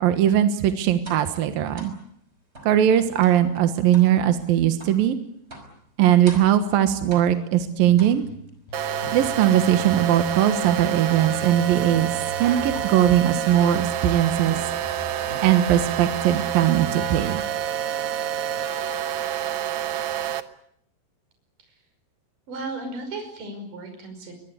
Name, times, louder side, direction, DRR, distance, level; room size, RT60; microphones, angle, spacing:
voice 1, 0.0-1.9 2.6-5.2 6.0-8.3 9.1-12.1 12.4-14.6 15.4-17.4, right 11 dB, 65° right, 9 dB, 2.8 m, -20 dB
sound 1, 1.0-1.3 1.8-2.0 2.5-2.8 3.2-3.5 3.9-4.1 4.8-5.0 5.5-5.8 6.3-6.6 7.1-7.5 8.0-8.5 9.0-10.1 10.5-10.9 11.2-11.6 11.9-12.2 12.7-13.1 13.7-14.0 14.5-15.0 15.3-15.7, right 1 dB, 15° right, 5.4 m, -42 dB
sound 2, 7.8-8.3 8.7-10.7 11.1-13.2 13.5-15.5 15.9-17.4, right 1 dB, 75° left, 7.0 m, -40 dB
sound 3, 8.7-20.4, right 10 dB, 85° right, 1.6 m, -28 dB
voice 2, 22.5-24.3, right 2 dB, 45° right, 5 dB, 7.0 m, -35 dB
24.0 x 21.5 x 9.8 m, 0.68 s
omnidirectional pair, 5.1 m